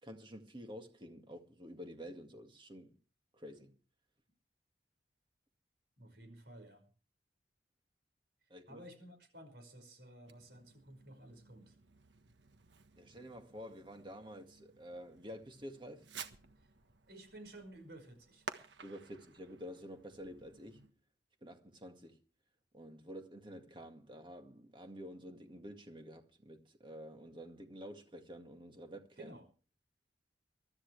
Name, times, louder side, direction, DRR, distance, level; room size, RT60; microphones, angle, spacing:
voice 1, 0.0-3.0 3.3-3.8 8.5-8.8 13.0-16.1 18.8-20.9 21.4-22.2 22.7-29.4, equal, 25° right, 2.1 m, -50 dB
voice 2, 6.0-6.9 8.4-11.8 16.6-16.7 17.1-18.5 29.2-29.5, right 1 dB, 65° right, 5.7 m, -54 dB
Fireworks, 10.2-20.9, right 5 dB, 85° right, 1.4 m, -54 dB
23.5 x 13.0 x 3.4 m
head